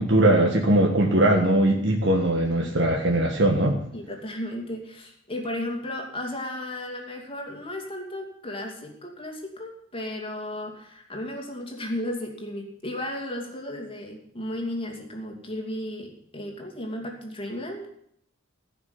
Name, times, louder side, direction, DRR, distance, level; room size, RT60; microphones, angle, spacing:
voice 1, 0.0-3.8, right 1 dB, 60° right, 0 dB, 1.6 m, -20 dB
voice 2, 3.9-17.9, left 1 dB, 25° left, 1 dB, 2.6 m, -34 dB
16.0 x 6.1 x 9.7 m, 0.71 s
head